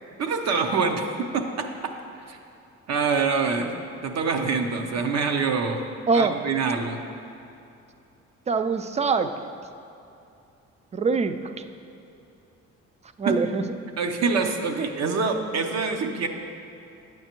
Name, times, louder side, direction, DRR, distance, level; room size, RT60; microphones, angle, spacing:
voice 1, 0.2-1.7 2.3-2.4 2.9-3.7 4.0-5.8 6.1-7.0 13.3-13.4 13.9-16.3, right 4 dB, 60° right, 4 dB, 0.7 m, -25 dB
voice 2, 6.1-6.4 8.5-9.3 10.9-11.6 13.2-13.6, right 4 dB, 25° right, 10 dB, 0.3 m, -23 dB
9.1 x 7.8 x 2.9 m, 2.6 s
cardioid pair, 90°, 30 cm